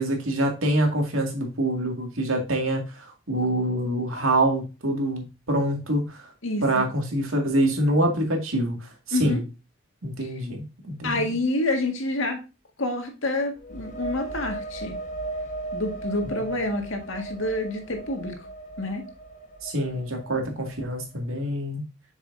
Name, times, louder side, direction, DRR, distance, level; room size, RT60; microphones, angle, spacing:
voice 1, 0.0-6.2 6.6-8.8 9.1-9.4 10.0-11.2 16.2-16.4 19.6-21.8, right 1 dB, 85° right, 2.1 m, -25 dB
voice 2, 6.4-6.9 9.1-9.4 10.2-10.3 11.0-12.4 12.8-15.0 15.7-18.4 18.8-19.0, left 2 dB, 70° left, 1.8 m, -28 dB
sound 1, 13.6-21.1, right 2 dB, 40° left, 1.2 m, -37 dB
7.5 x 6.2 x 2.6 m
head